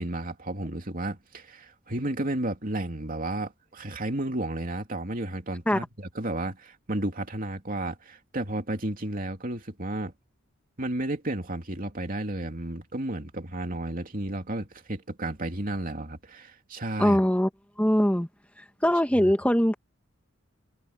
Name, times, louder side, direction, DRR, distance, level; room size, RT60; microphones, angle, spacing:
voice 1, 0.0-10.1 10.8-17.2 19.2-19.3, right 1 dB, 45° right, 2.7 m, -32 dB
voice 2, 17.0-17.5 17.8-18.3 18.8-19.8, equal, 5° left, 1.4 m, -21 dB
head